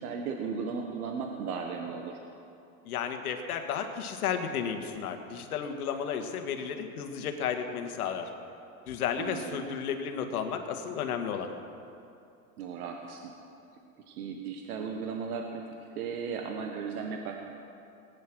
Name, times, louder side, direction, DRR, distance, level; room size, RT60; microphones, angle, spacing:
voice 1, 0.0-2.2 9.2-9.7 12.6-13.4 14.1-15.6 15.9-17.4, right 5 dB, 80° right, 2 dB, 1.5 m, -36 dB
voice 2, 2.8-8.3 8.9-11.5, left 7 dB, 85° left, 6 dB, 1.7 m, -33 dB
19.0 x 9.6 x 6.2 m, 2.7 s
supercardioid pair, 130°, 43 cm